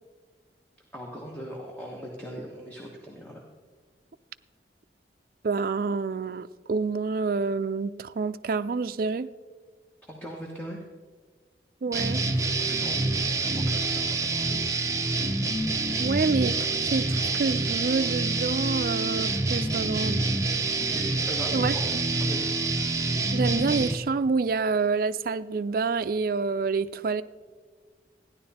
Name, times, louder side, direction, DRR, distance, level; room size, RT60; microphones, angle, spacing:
voice 1, 0.9-3.4 10.1-10.8 12.6-14.7 20.7-21.8 22.2-22.5, equal, 10° left, -2 dB, 1.2 m, -40 dB
voice 2, 5.4-9.3 11.8-12.3 16.0-20.2 21.5-21.8 23.3-27.2, right 4 dB, 55° right, 14 dB, 0.4 m, -27 dB
sound 1, 11.9-23.9, right 3 dB, 20° right, 0.7 m, -27 dB
14.5 x 10.5 x 4.2 m, 1.5 s
head